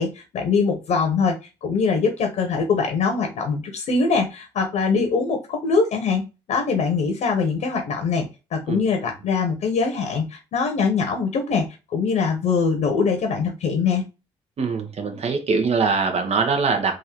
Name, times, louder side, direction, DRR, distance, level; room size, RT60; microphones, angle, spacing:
voice 1, 0.0-1.4 1.6-6.2 6.5-14.0, left 5 dB, 70° left, 4 dB, 1.1 m, -22 dB
voice 2, 14.6-17.0, right 4 dB, 55° right, 4 dB, 1.2 m, -22 dB
3.9 x 2.6 x 4.5 m, 0.29 s
supercardioid pair, 55°, 13 cm